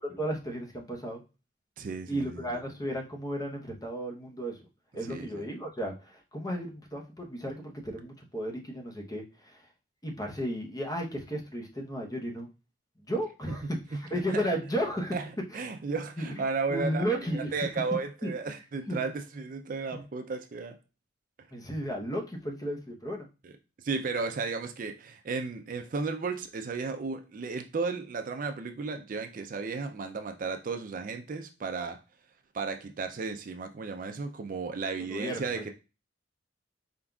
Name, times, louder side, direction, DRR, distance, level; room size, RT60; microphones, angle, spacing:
voice 1, 0.1-1.2 2.1-4.6 4.9-9.6 10.0-12.5 13.0-15.1 16.2-16.4 16.7-17.5 18.2-18.5 18.9-19.0 19.9-20.0 21.5-23.3 35.0-35.6, equal, 20° left, 0.8 m, -34 dB
voice 2, 1.8-2.6 5.1-5.5 13.5-14.0 14.3-14.4 15.1-15.3 15.5-17.1 17.3-20.8 23.4-23.5 23.8-32.0 32.5-35.7, right 4 dB, 45° right, 0.4 m, -34 dB
4.3 x 3.8 x 2.3 m
head